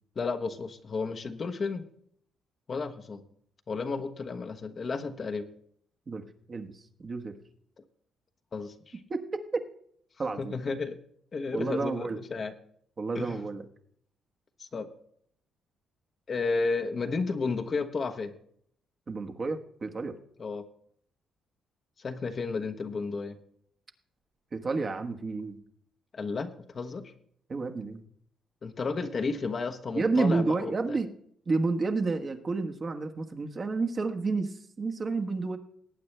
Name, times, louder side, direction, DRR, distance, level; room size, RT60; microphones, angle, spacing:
voice 1, 0.1-1.9 2.7-3.2 3.7-5.5 8.5-9.0 10.4-11.0 11.3-12.5 13.1-13.4 14.6-14.9 16.3-18.3 20.4-20.6 22.0-23.4 26.1-27.0 28.6-31.0, left 4 dB, 40° left, 7 dB, 1.1 m, -32 dB
voice 2, 7.0-7.4 9.1-9.7 10.2-10.5 11.5-12.2 13.0-13.7 19.1-20.2 24.5-25.6 27.5-28.0 29.9-31.1 31.5-35.6, right 3 dB, 40° right, 5 dB, 1.4 m, -30 dB
19.0 x 8.7 x 3.3 m, 0.64 s
cardioid pair, 90°, 0 cm